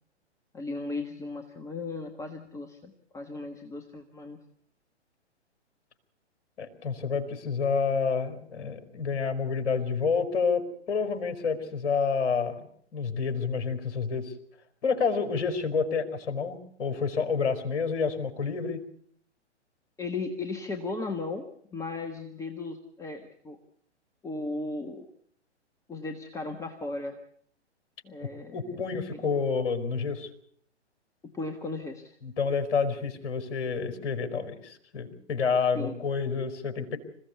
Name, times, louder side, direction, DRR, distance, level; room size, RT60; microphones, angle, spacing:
voice 1, 0.5-4.4 20.0-21.5 21.7-23.6 24.2-25.1 25.9-27.2 28.0-28.8 29.1-29.2 31.3-32.2 35.7-35.9, left 3 dB, 10° left, 6 dB, 1.4 m, -36 dB
voice 2, 6.6-12.6 12.9-14.3 14.8-18.8 28.2-30.3 32.2-37.0, left 5 dB, 55° left, 7 dB, 4.9 m, -29 dB
27.0 x 16.0 x 8.4 m, 0.64 s
figure-of-eight pair, 120°, 35 cm